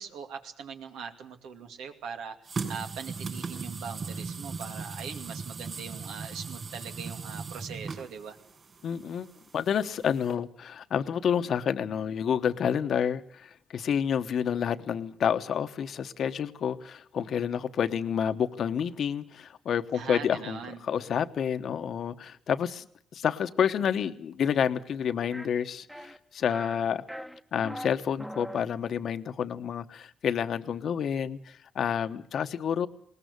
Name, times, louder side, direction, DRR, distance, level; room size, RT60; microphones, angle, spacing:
voice 1, 0.0-2.4 2.7-8.4 19.9-20.8, right 6 dB, 85° right, 6 dB, 2.4 m, -41 dB
sound 1, 2.4-10.3, right 4 dB, 40° right, 5.5 m, -38 dB
voice 2, 8.8-22.9 23.1-27.0 27.5-32.9, left 8 dB, 60° left, 11 dB, 1.1 m, -29 dB
sound 2, 25.3-25.5 25.9-26.2 26.5-26.8 27.1-27.9 28.2-28.6, equal, ahead, 1.1 m, -40 dB
20.5 x 19.0 x 8.2 m, 0.64 s
cardioid pair, 90°, 0 cm